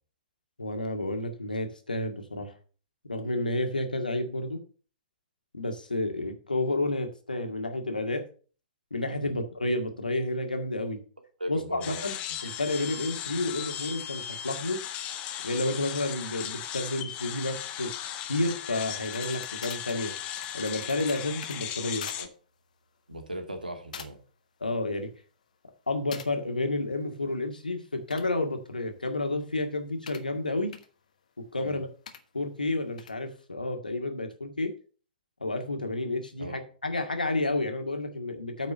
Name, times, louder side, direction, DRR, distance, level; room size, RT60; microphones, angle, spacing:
voice 1, 0.6-2.5 3.0-4.6 5.5-8.2 8.9-11.0 11.5-12.1 12.4-14.8 15.4-17.9 18.3-20.1 20.5-22.1 24.6-25.1 25.9-30.7 31.5-31.9 32.3-34.7 35.4-38.7, left 2 dB, 75° left, 5 dB, 2.1 m, -30 dB
voice 2, 11.4-12.0 22.2-22.3 23.1-24.2 31.6-31.8 36.4-36.6, right 1 dB, 80° right, 5 dB, 2.2 m, -38 dB
sound 1, 11.8-22.3, left 10 dB, 30° left, 1.1 m, -37 dB
sound 2, 19.0-21.6 22.0-22.2 22.6-22.8 23.5-23.7 23.9-24.3 24.7-25.2 26.1-26.3 27.9-30.3 30.7-30.9 32.1-32.2 33.0-33.2, left 7 dB, 60° left, 1.3 m, -45 dB
9.1 x 5.3 x 6.6 m, 0.40 s
figure-of-eight pair, 110°, 5 cm